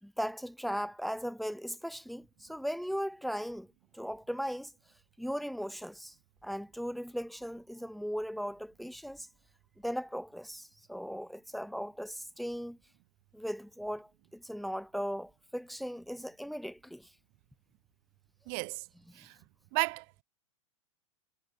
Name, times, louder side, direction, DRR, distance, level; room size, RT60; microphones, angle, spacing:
voice 1, 0.0-3.7 3.9-4.7 5.2-6.1 6.4-9.3 9.8-12.8 13.3-17.1 19.1-19.2, equal, ahead, 4.3 m, -38 dB
voice 2, 18.5-18.9 19.1-19.4 19.7-20.2, right 40 dB or more, 50° right, 6.6 m, -33 dB
figure-of-eight pair, 95°, 17 cm